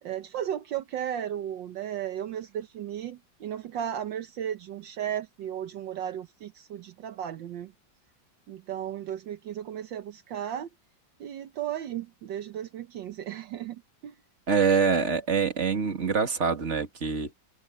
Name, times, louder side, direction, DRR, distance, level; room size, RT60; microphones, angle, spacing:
voice 1, 0.0-7.7 8.5-10.7 11.2-14.1, right 10 dB, 75° right, 1.6 m, -35 dB
voice 2, 14.5-17.3, right 5 dB, 40° right, 2.3 m, -25 dB
omnidirectional pair, 2.1 m